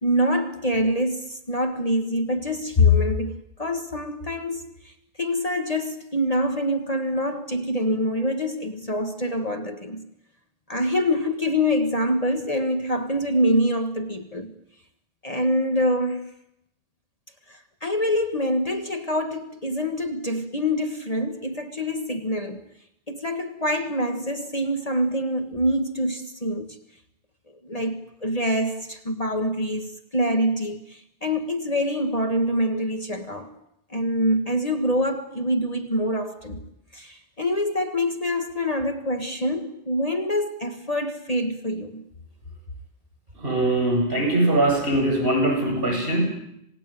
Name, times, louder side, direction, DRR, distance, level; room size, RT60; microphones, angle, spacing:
voice 1, 0.0-10.0 10.7-14.5 15.2-16.3 17.5-22.7 23.1-26.8 27.6-33.5 33.9-36.6 36.9-42.0, left 1 dB, 35° left, 1.6 m, -25 dB
voice 2, 43.4-46.2, right 1 dB, 50° right, 8.3 m, -21 dB
27.5 x 19.0 x 9.3 m
omnidirectional pair, 1.2 m